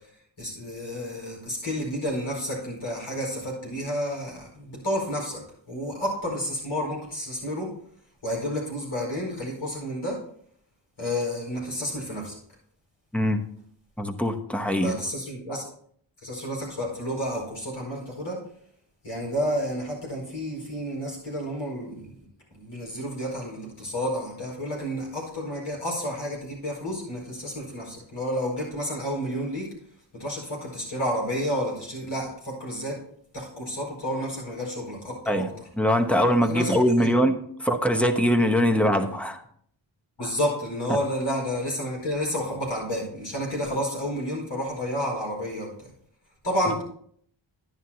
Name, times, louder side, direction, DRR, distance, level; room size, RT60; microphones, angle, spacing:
voice 1, 0.4-7.7 8.2-10.2 11.0-12.4 14.8-15.6 16.2-18.4 19.0-22.1 22.5-29.7 30.1-33.0 33.3-35.5 36.5-37.1 40.2-45.9 46.4-46.8, equal, 85° left, -2 dB, 4.7 m, -30 dB
voice 2, 13.1-13.4 14.0-14.9 35.3-35.5 35.8-39.4, equal, 5° left, 6 dB, 0.9 m, -22 dB
11.0 x 10.0 x 2.8 m, 0.63 s
wide cardioid pair, 75°, 47 cm